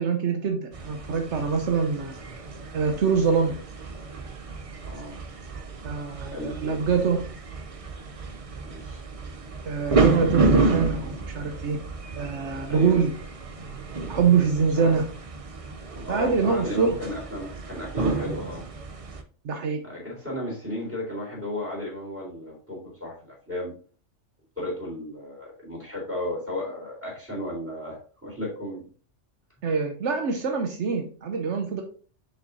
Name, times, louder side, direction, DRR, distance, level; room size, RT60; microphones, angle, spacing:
voice 1, 0.0-2.1 2.7-3.5 5.8-7.2 9.6-11.8 12.1-13.1 14.1-15.0 16.1-16.9 19.4-19.8 29.6-31.8, right 5 dB, 75° right, 4 dB, 1.2 m, -24 dB
sound 1, 0.7-19.2, right 3 dB, 35° right, 0.6 m, -30 dB
voice 2, 4.8-5.2 6.3-7.0 8.6-9.0 12.7-13.0 14.7-15.0 15.9-18.6 19.8-23.7 24.6-28.9, left 1 dB, 10° right, -3 dB, 3.7 m, -34 dB
6.9 x 6.2 x 2.7 m, 0.41 s
omnidirectional pair, 1.2 m